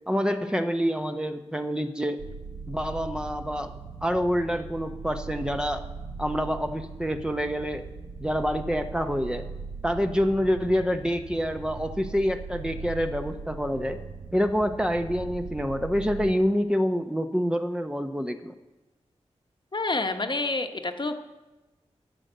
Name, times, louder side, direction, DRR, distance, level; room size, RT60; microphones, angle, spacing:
voice 1, 0.1-2.3 2.7-3.7 4.0-5.8 6.2-7.8 8.2-9.5 9.8-14.0 14.3-18.5, equal, 5° right, 6 dB, 0.8 m, -27 dB
sound 1, 2.2-16.3, right 4 dB, 85° right, 1.0 m, -40 dB
voice 2, 19.7-21.1, left 2 dB, 40° left, 6 dB, 1.1 m, -28 dB
11.0 x 6.3 x 8.0 m, 1.1 s
cardioid pair, 45°, 12 cm